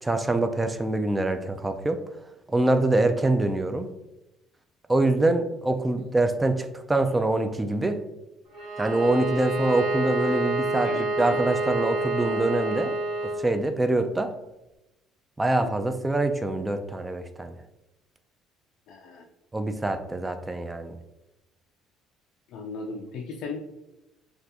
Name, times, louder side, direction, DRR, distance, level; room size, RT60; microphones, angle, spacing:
voice 1, 0.0-2.0 2.5-3.9 4.9-8.0 8.8-12.9 13.4-14.3 15.4-17.6 19.5-21.0, right 2 dB, 15° right, 8 dB, 0.3 m, -25 dB
Bowed string instrument, 8.5-13.5, right 2 dB, 60° right, 1.2 m, -28 dB
voice 2, 10.8-11.4 15.6-15.9 18.9-19.2 22.5-23.6, left 4 dB, 70° left, 2 dB, 0.3 m, -37 dB
2.7 x 2.4 x 3.4 m, 0.93 s
supercardioid pair, 90°, 0 cm